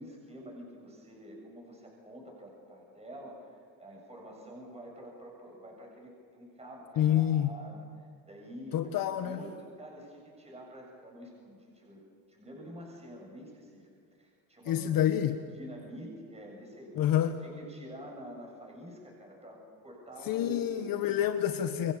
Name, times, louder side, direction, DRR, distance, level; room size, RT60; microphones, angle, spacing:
voice 1, 0.0-7.9 8.2-8.9 9.2-12.0 12.3-13.9 14.2-20.9, equal, 15° right, 0 dB, 7.7 m, -47 dB
voice 2, 7.0-7.5 8.7-9.4 14.7-15.4 17.0-17.3 20.3-21.9, left 11 dB, 50° left, 7 dB, 1.6 m, -27 dB
30.0 x 23.5 x 7.0 m, 2.2 s
supercardioid pair, 90°, 43 cm